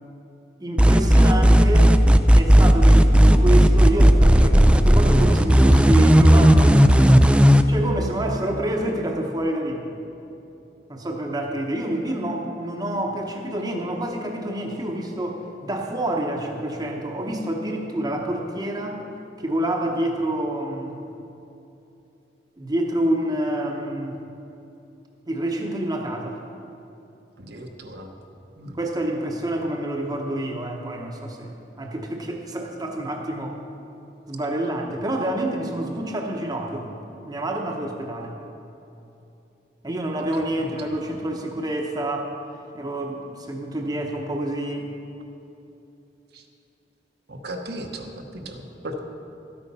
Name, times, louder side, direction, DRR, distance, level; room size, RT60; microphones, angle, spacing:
voice 1, 0.6-1.9 2.4-6.8 7.7-9.9 10.9-19.0 19.4-21.0 22.6-24.2 25.3-26.4 28.7-33.6 34.3-36.9 37.3-38.4 39.8-42.3 42.7-44.9, right 1 dB, 25° right, 1 dB, 0.9 m, -27 dB
sound 1, 0.8-7.6, equal, 5° right, 0.3 m, -13 dB
voice 2, 27.4-28.1 28.6-28.8 40.2-40.3 40.6-40.7 46.3-46.4 47.3-49.0, right 1 dB, 65° right, 3 dB, 1.1 m, -36 dB
12.5 x 8.5 x 5.5 m, 2.9 s
head